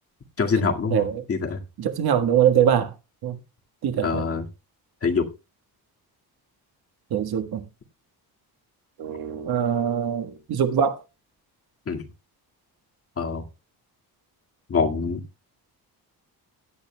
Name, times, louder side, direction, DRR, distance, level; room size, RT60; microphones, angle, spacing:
voice 1, 0.4-1.6 4.0-4.4 5.0-5.3 11.9-12.1 13.2-13.4 14.7-15.2, left 5 dB, 35° left, 2.0 m, -25 dB
voice 2, 0.9-1.2 1.8-2.9 3.2-3.4 3.8-4.2 7.1-7.6 9.0-11.0, right 9 dB, 70° right, 1.6 m, -23 dB
17.0 x 11.0 x 2.2 m
cardioid pair, 135°, 39 cm